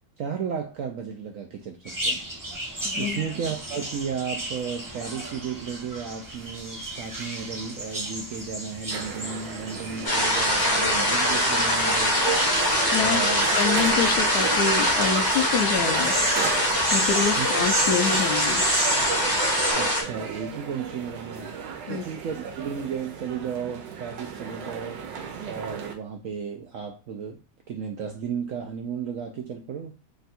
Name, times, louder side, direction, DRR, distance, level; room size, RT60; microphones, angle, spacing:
voice 1, 0.2-2.2 2.9-12.2 13.0-13.5 17.4-17.6 19.7-21.5 21.9-25.0 25.4-27.4 27.7-29.9, right 7 dB, 70° right, 0.8 m, -34 dB
sound 1, 1.8-19.7, right 1 dB, 25° right, 0.4 m, -33 dB
voice 2, 2.8-3.3 12.9-13.2 13.5-16.1 16.9-18.7 21.9-22.0, left 6 dB, 70° left, 1.0 m, -26 dB
sound 2, 8.9-25.9, right 6 dB, 85° right, 1.4 m, -34 dB
sound 3, 10.0-20.0, left 1 dB, 20° left, 0.6 m, -23 dB
3.5 x 2.3 x 4.0 m
omnidirectional pair, 1.9 m